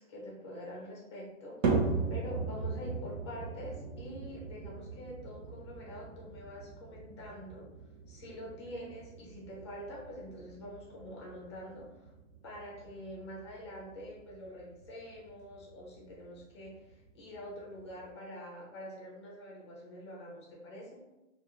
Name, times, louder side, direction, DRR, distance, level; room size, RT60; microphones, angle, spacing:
voice 1, 0.0-7.7 8.1-12.1 12.4-21.0, equal, 20° left, -3 dB, 0.5 m, -46 dB
sound 1, 1.6-18.1, right 4 dB, 75° right, 0.7 m, -39 dB
2.4 x 2.3 x 2.9 m, 1.0 s
hypercardioid pair, 155°, 40 cm